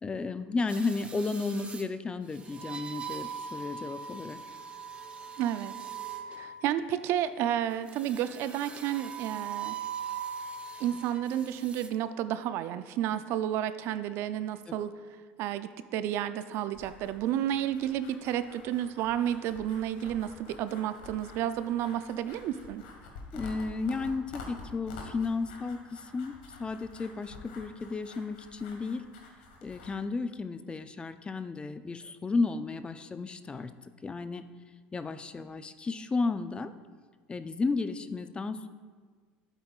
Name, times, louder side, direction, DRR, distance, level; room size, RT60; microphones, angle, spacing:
voice 1, 0.0-4.4 14.7-14.8 23.3-26.3 26.6-29.0 29.6-33.7 34.0-34.5 34.9-36.7 37.3-38.7, left 3 dB, 20° left, 11 dB, 0.5 m, -33 dB
sound 1, 0.7-1.8 2.5-6.8 8.0-11.2 11.6-11.9, right 7 dB, 25° right, 0.8 m, -40 dB
voice 2, 5.4-5.7 6.3-9.8 10.8-14.9 15.4-22.8, right 11 dB, 65° right, 12 dB, 0.4 m, -31 dB
sound 2, 16.7-29.9, left 3 dB, 90° left, 1.6 m, -49 dB
12.0 x 8.1 x 2.4 m, 1.5 s
supercardioid pair, 95°, 5 cm